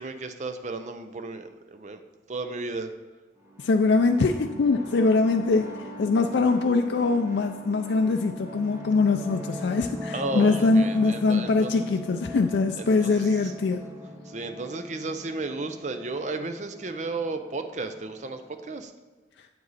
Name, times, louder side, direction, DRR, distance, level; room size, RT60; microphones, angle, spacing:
voice 1, 0.0-2.0 2.3-2.9 10.1-11.9 12.8-13.5 14.3-18.9, right 3 dB, 40° right, 8 dB, 0.5 m, -34 dB
sound 1, 3.4-18.8, left 1 dB, 15° right, 0.8 m, -41 dB
voice 2, 3.6-5.7 6.0-13.8, left 3 dB, 75° left, 5 dB, 0.4 m, -23 dB
8.1 x 7.7 x 4.1 m, 1.3 s
head